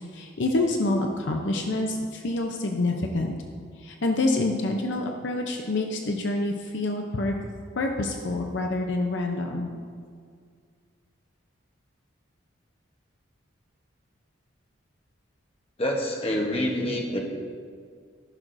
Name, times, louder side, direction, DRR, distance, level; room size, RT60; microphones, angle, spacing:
voice 1, 0.1-3.3 3.8-7.3 7.8-9.7, left 2 dB, 60° left, 2 dB, 0.6 m, -27 dB
voice 2, 15.8-17.2, left 1 dB, 30° left, -1 dB, 1.0 m, -26 dB
14.5 x 6.1 x 2.6 m, 2.1 s
head